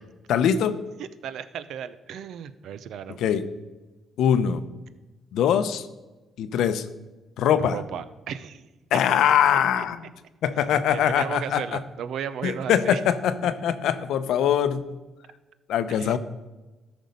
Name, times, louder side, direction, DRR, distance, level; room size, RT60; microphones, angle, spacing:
voice 1, 0.3-0.8 3.2-3.5 4.2-4.6 5.3-5.9 6.4-6.9 7.4-7.8 8.9-10.0 10.4-11.8 12.4-14.8 15.7-16.2, left 9 dB, 80° left, 12 dB, 0.7 m, -22 dB
voice 2, 1.0-3.2 7.7-8.7 9.7-9.8 10.9-13.0 13.4-13.5 15.9-16.2, right 8 dB, 75° right, 13 dB, 0.6 m, -35 dB
13.5 x 5.3 x 5.3 m, 1.1 s
cardioid pair, 90°, 0 cm